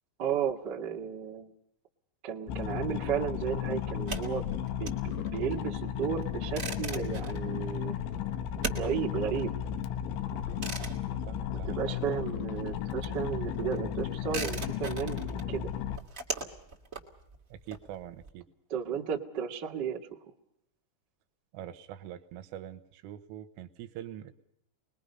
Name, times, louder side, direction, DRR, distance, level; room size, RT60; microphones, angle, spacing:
voice 1, 0.2-1.5 2.2-4.4 4.8-7.9 8.7-9.5 11.6-15.7 18.7-20.0, right 8 dB, 60° right, -1 dB, 1.1 m, -33 dB
sound 1, 2.5-16.0, left 9 dB, 75° left, 3.3 m, -34 dB
sound 2, 3.9-12.2 12.5-18.3, right 3 dB, 35° right, 1.4 m, -41 dB
voice 2, 11.3-11.8 17.5-18.5 21.5-24.3, right 11 dB, 80° right, 10 dB, 3.7 m, -44 dB
28.0 x 21.0 x 5.5 m, 0.79 s
omnidirectional pair, 5.9 m